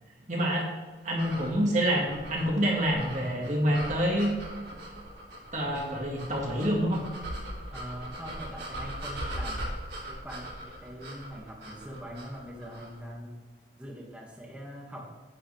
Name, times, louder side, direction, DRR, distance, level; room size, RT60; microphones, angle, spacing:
voice 1, 0.3-0.7 1.0-4.4 5.5-7.0, equal, 40° right, -1 dB, 1.9 m, -27 dB
sound 1, 1.1-13.0, right 1 dB, 65° right, 3.1 m, -40 dB
voice 2, 7.7-9.6 10.1-13.3 13.8-15.1, equal, 5° right, -4 dB, 2.0 m, -42 dB
10.5 x 9.2 x 3.4 m, 1.3 s
head